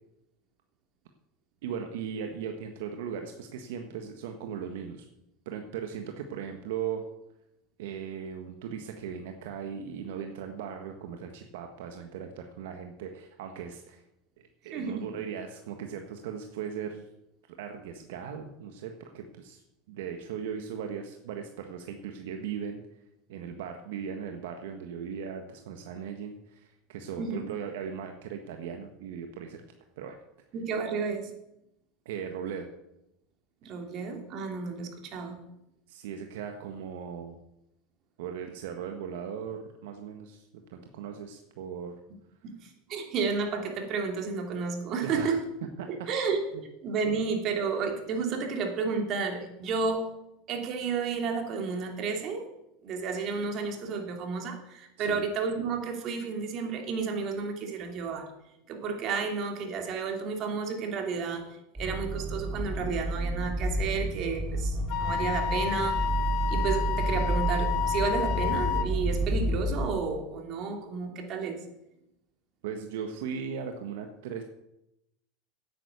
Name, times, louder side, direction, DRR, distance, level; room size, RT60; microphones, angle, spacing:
voice 1, 1.6-5.0 5.4-7.0 7.8-14.0 14.6-17.1 17.6-19.6 19.9-22.8 23.3-29.6 30.0-30.2 32.0-32.7 35.9-37.3 38.2-41.9 45.0-45.4 45.8-45.9 46.5-46.6 55.0-55.2 72.6-74.4, right 7 dB, 80° right, 5 dB, 1.3 m, -38 dB
voice 2, 14.7-15.2 27.2-27.5 30.5-31.3 33.6-35.4 42.4-45.4 45.9-46.4 46.8-50.1 50.5-52.5 52.8-58.3 58.7-61.5 61.7-66.0 66.5-71.6, right 5 dB, 45° right, 3 dB, 3.0 m, -32 dB
sound 1, 61.8-69.9, right 1 dB, 10° right, 4.1 m, -30 dB
Wind instrument woodwind instrument, 64.9-68.9, left 10 dB, 60° left, 1.2 m, -30 dB
9.6 x 9.3 x 8.0 m, 0.86 s
supercardioid pair, 115°, 0 cm